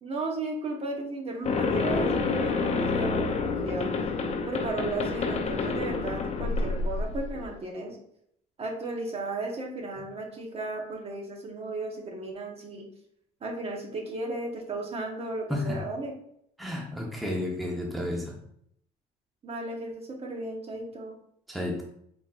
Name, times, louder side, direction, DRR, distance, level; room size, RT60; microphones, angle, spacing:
voice 1, 0.0-3.9 4.5-8.0 8.6-12.9 13.4-16.1 19.4-21.2, right 2 dB, 35° right, 1 dB, 1.1 m, -35 dB
sound 1, 1.5-7.5, left 4 dB, 40° left, 0.6 m, -28 dB
voice 2, 15.5-15.8 16.6-18.4 21.5-21.8, left 1 dB, ahead, -2 dB, 0.9 m, -31 dB
4.3 x 4.1 x 2.5 m, 0.71 s
cardioid pair, 110°, 17 cm